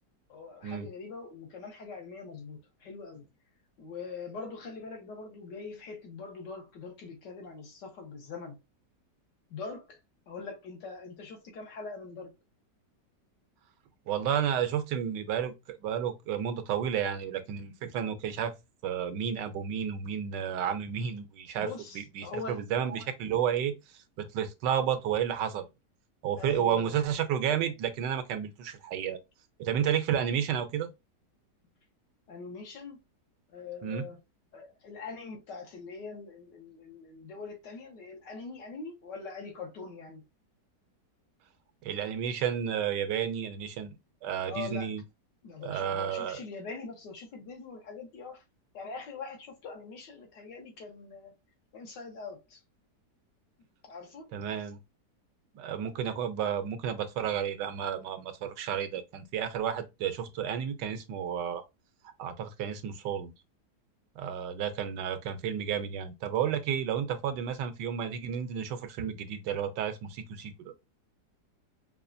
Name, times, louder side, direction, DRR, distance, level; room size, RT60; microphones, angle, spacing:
voice 1, 0.3-3.3 3.8-8.6 9.5-10.0 10.3-12.3 21.6-22.6 26.4-27.0 32.3-33.0 33.5-34.2 34.5-40.2 44.5-44.9 45.4-48.4 48.7-51.3 51.7-52.6 53.8-54.3, left 4 dB, 80° left, 1.8 m, -43 dB
voice 2, 14.1-18.5 18.8-21.7 22.2-23.7 24.2-25.6 26.2-29.2 29.6-30.9 33.8-34.1 41.8-43.9 44.2-45.0 45.6-46.4 54.3-54.8 55.5-61.6 62.2-63.3 64.2-70.7, right 8 dB, 85° right, 1.3 m, -31 dB
5.5 x 2.4 x 2.6 m
omnidirectional pair, 1.9 m